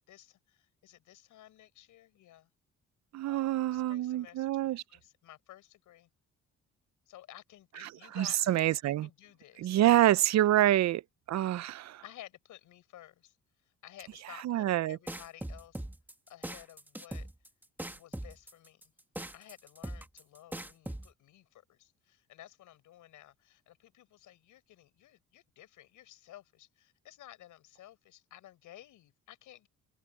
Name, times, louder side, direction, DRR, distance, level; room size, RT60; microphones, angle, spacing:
voice 1, 0.1-2.5 3.3-6.1 7.1-10.0 10.5-10.6 12.0-13.4 13.8-15.8 16.3-17.3 17.9-18.9 19.3-29.7, left 13 dB, 85° left, 7.4 m, -54 dB
voice 2, 3.1-4.8 7.8-7.9 8.2-9.1 9.6-11.0 11.3-12.0 14.4-15.0, right 13 dB, 60° right, 0.6 m, -27 dB
sound 1, 15.1-21.1, right 1 dB, 5° right, 1.8 m, -40 dB
cardioid pair, 90°, 30 cm